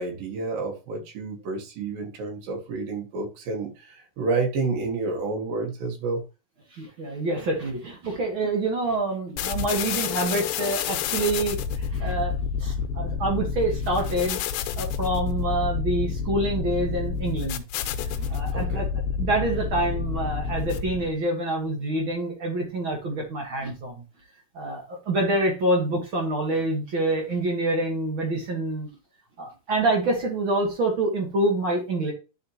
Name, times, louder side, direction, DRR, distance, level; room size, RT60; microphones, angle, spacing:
voice 1, 0.0-6.2 18.5-18.8, right 3 dB, 65° right, 3.0 m, -29 dB
voice 2, 6.7-14.4 14.8-17.6 18.2-18.9 19.2-24.0 24.5-28.9 29.4-32.1, right 2 dB, 50° right, 1.6 m, -26 dB
sound 1, 9.4-21.2, left 7 dB, 85° left, 2.5 m, -29 dB
10.5 x 4.3 x 2.8 m
omnidirectional pair, 4.6 m